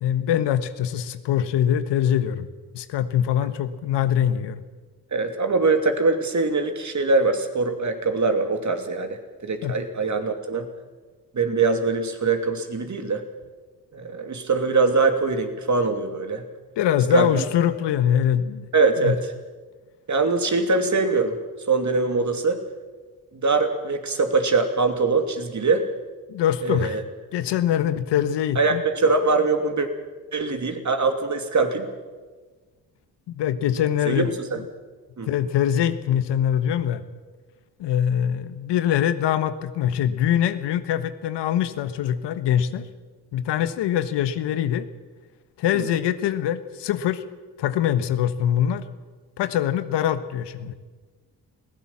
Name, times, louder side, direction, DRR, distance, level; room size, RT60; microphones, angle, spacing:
voice 1, 0.0-2.5 2.7-4.6 9.6-9.7 16.8-18.6 19.0-19.1 26.3-27.0 27.3-28.8 33.3-34.3 35.3-37.0 37.8-42.9 43.3-44.9 45.6-47.2 47.6-48.8 49.4-50.7, left 10 dB, 70° left, 11 dB, 1.3 m, -23 dB
voice 2, 5.1-10.7 11.3-13.2 13.9-16.4 17.1-17.4 18.7-19.2 20.1-21.4 21.7-22.6 23.3-25.8 26.6-27.0 28.5-29.9 30.3-31.9 34.1-34.2 34.5-34.6 35.2-35.3 45.7-45.9, right 3 dB, 40° right, 6 dB, 3.0 m, -22 dB
21.5 x 16.5 x 7.3 m, 1.4 s
hypercardioid pair, 50°, 43 cm